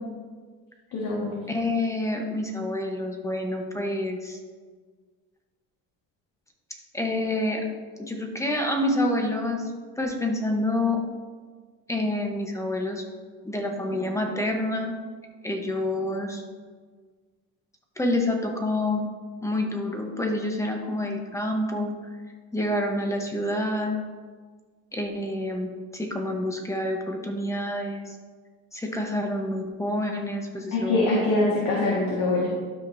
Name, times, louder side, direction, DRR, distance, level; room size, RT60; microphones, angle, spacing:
voice 1, 0.9-1.4 30.7-32.5, left 2 dB, 60° left, -4 dB, 1.7 m, -24 dB
voice 2, 1.5-4.4 6.9-7.6 8.0-11.0 11.9-13.0 13.4-14.9 15.4-16.4 18.0-19.1 19.4-21.9 22.5-24.0 24.9-28.1 28.7-31.1, left 1 dB, 10° left, 3 dB, 1.0 m, -28 dB
12.0 x 5.3 x 2.7 m, 1.5 s
cardioid pair, 115°, 33 cm